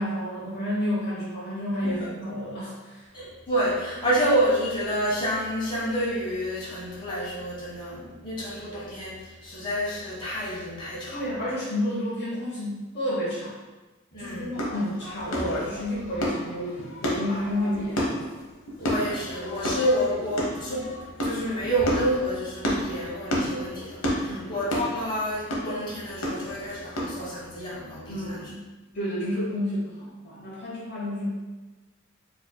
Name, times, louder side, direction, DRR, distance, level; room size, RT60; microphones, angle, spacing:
voice 1, 0.0-3.1 11.1-13.6 14.2-18.2 24.3-24.5 28.1-28.6 28.9-31.3, left 1 dB, 55° left, -7 dB, 0.9 m, -30 dB
voice 2, 3.1-11.4 14.1-14.5 18.8-28.5, equal, 25° left, -8 dB, 1.4 m, -29 dB
sound 1, 14.5-27.3, equal, 85° left, 0.9 m, -31 dB
4.6 x 3.2 x 2.2 m, 1.2 s
head